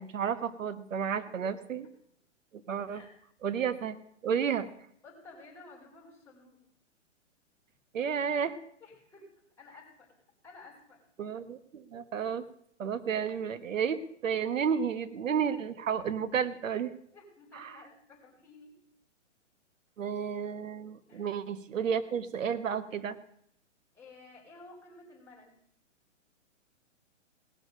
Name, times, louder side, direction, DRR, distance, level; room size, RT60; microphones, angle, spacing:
voice 1, 0.0-1.8 2.7-3.0 3.4-4.0 4.2-4.7 7.9-8.5 11.2-12.4 12.8-16.9 17.5-17.7 20.0-23.2, right 7 dB, 90° right, 13 dB, 1.2 m, -32 dB
voice 2, 5.0-6.6 8.8-9.3 9.6-10.1 10.4-11.0 17.1-18.7 21.1-21.3 23.9-25.6, left 3 dB, 5° left, -7 dB, 4.5 m, -53 dB
18.0 x 6.9 x 6.4 m, 0.69 s
hypercardioid pair, 155°, 38 cm